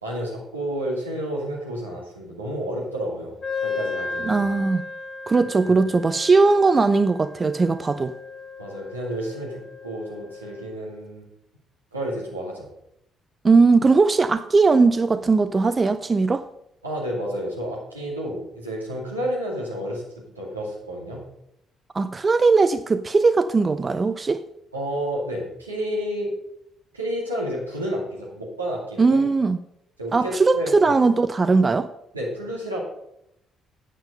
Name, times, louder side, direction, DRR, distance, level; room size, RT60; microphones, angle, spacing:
voice 1, 0.0-3.3 3.6-4.4 5.6-5.9 8.6-11.3 11.9-12.7 16.8-21.3 24.7-26.3 26.9-29.2 30.0-30.9 32.1-32.8, equal, 85° right, 2.3 m, -30 dB
Wind instrument woodwind instrument, 3.4-10.8, left 4 dB, 40° left, 1.0 m, -35 dB
voice 2, 4.2-4.8 5.3-8.1 13.4-16.5 21.9-24.4 29.0-29.6 30.1-31.9, right 4 dB, 30° right, 0.5 m, -19 dB
8.8 x 7.4 x 5.3 m
figure-of-eight pair, 45°, 0 cm